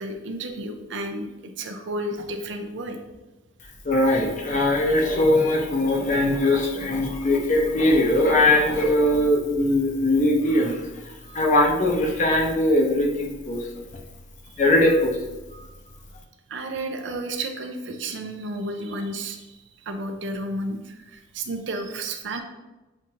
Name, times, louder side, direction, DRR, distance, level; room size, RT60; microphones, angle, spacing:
voice 1, 0.0-3.0 16.5-19.6 19.9-22.4, right 1 dB, 65° right, 4 dB, 0.5 m, -32 dB
voice 2, 3.8-10.8 11.3-13.7 14.6-15.2 15.5-15.6, left 1 dB, 35° left, 0 dB, 0.7 m, -20 dB
7.2 x 2.5 x 2.8 m, 1.1 s
head